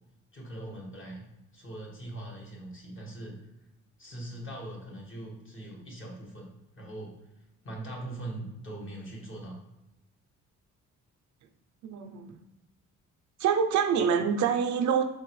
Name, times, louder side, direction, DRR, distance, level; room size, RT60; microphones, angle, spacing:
voice 1, 0.3-1.2 1.5-3.4 4.0-6.5 6.8-7.2 7.6-9.6, right 1 dB, 40° left, -2 dB, 1.3 m, -41 dB
voice 2, 11.8-12.4 13.4-15.0, right 7 dB, 70° right, 5 dB, 0.5 m, -26 dB
4.1 x 3.3 x 3.1 m, 0.94 s
cardioid pair, 90°, 30 cm